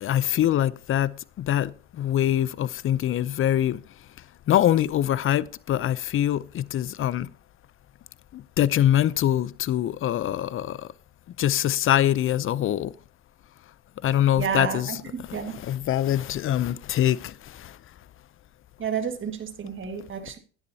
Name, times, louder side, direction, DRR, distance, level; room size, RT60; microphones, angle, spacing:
voice 1, 0.0-3.8 4.5-7.3 8.3-10.9 11.4-12.9 14.0-14.9 15.3-17.7, left 11 dB, 40° left, 0.5 m, -24 dB
voice 2, 14.4-15.6 18.8-20.4, right 7 dB, 35° right, 1.8 m, -31 dB
10.5 x 10.0 x 2.8 m
supercardioid pair, 85°, 34 cm